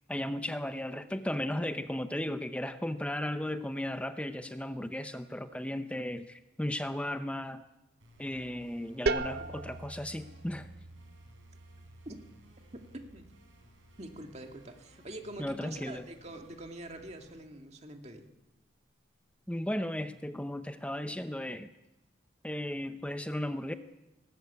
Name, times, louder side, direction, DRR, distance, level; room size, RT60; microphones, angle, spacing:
voice 1, 0.1-7.6 8.2-10.7 15.4-16.0 19.5-21.7 22.4-23.7, left 1 dB, 5° left, 9 dB, 0.7 m, -35 dB
sound 1, 8.0-17.4, equal, 75° right, 5.6 m, -60 dB
sound 2, 9.1-14.6, right 3 dB, 50° right, 0.7 m, -39 dB
voice 2, 14.0-18.3, right 1 dB, 35° right, 4 dB, 2.1 m, -45 dB
19.0 x 19.0 x 8.3 m, 0.97 s
head